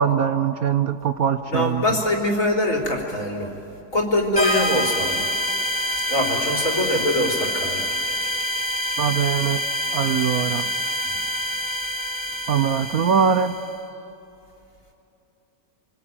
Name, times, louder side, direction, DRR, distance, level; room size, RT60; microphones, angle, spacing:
voice 1, 0.0-1.8 9.0-9.6 9.9-10.7 12.5-13.6, right 7 dB, 65° right, 10 dB, 1.2 m, -21 dB
voice 2, 1.5-3.5 3.9-5.2 6.1-7.8 11.1-11.2, left 1 dB, 50° left, 1 dB, 4.0 m, -23 dB
sound 1, 4.4-13.7, equal, 5° left, 4.4 m, -26 dB
29.0 x 21.5 x 9.2 m, 2.8 s
omnidirectional pair, 1.8 m